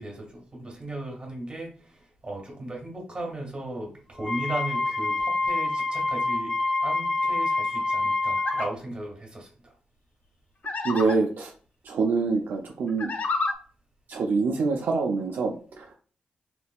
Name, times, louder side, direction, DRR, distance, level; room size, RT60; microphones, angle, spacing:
voice 1, 0.0-6.5 6.8-9.7, right 2 dB, 25° right, 0 dB, 1.7 m, -36 dB
Wind instrument woodwind instrument, 4.2-8.7, left 2 dB, 10° left, 1.2 m, -26 dB
sound 1, 8.4-8.7 10.6-11.2 12.9-13.5, left 3 dB, 50° left, 0.6 m, -29 dB
voice 2, 10.8-11.5 11.8-13.1 14.1-15.9, right 4 dB, 70° right, 1 dB, 0.5 m, -25 dB
3.4 x 3.3 x 2.3 m, 0.40 s
cardioid pair, 105°, 3 cm